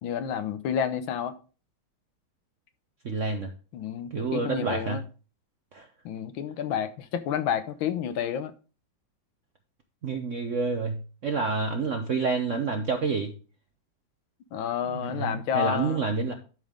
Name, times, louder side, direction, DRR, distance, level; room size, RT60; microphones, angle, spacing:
voice 1, 0.0-1.4 3.7-5.0 6.0-8.5 14.5-16.0, left 8 dB, 75° left, 1.4 m, -30 dB
voice 2, 3.0-3.5 4.1-5.0 5.7-5.9 10.0-13.3 14.8-16.3, right 4 dB, 60° right, 0.8 m, -28 dB
11.5 x 5.3 x 3.6 m
omnidirectional pair, 2.3 m